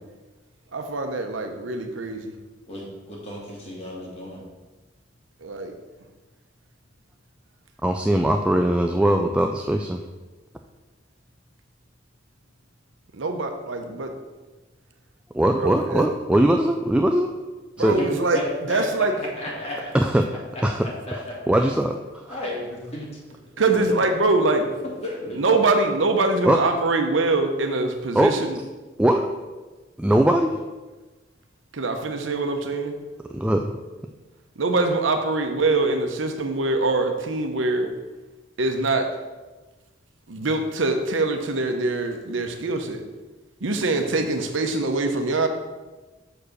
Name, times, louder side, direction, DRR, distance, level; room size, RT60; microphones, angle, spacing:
voice 1, 0.7-2.3 5.4-5.7 13.1-14.1 15.6-16.0 17.8-18.4 18.7-19.1 23.6-24.6 25.4-28.6 31.7-32.9 34.6-37.9 38.6-39.1 40.3-43.0 43.6-45.5, right 3 dB, 75° right, 5 dB, 0.9 m, -23 dB
voice 2, 2.7-4.4 17.8-19.9 20.5-21.7 22.3-23.1 23.6-24.1 25.0-25.5, left 1 dB, 35° left, -4 dB, 2.2 m, -34 dB
voice 3, 7.8-10.0 15.3-17.3 17.8-18.0 19.9-20.2 20.6-20.8 21.5-22.2 26.4-26.6 28.1-28.3 29.0-29.3 30.0-30.6 33.3-33.8, right 1 dB, 5° right, 3 dB, 0.3 m, -20 dB
6.6 x 4.9 x 6.4 m, 1.2 s
head